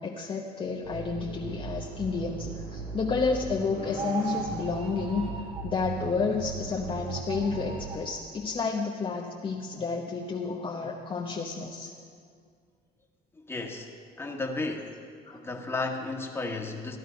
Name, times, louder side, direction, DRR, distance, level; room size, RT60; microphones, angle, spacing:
voice 1, 0.0-5.3 5.6-11.9 15.3-15.4, left 4 dB, 30° left, -1 dB, 1.0 m, -31 dB
sound 1, 0.8-7.9, right 4 dB, 70° right, 3.2 m, -38 dB
sound 2, 3.9-5.7 7.0-8.1, right 6 dB, 35° right, 1.8 m, -38 dB
voice 2, 13.3-13.9 14.2-14.9 15.3-17.0, left 3 dB, 15° left, 1 dB, 1.6 m, -33 dB
15.5 x 11.0 x 5.2 m, 2.1 s
cardioid pair, 110°, 17 cm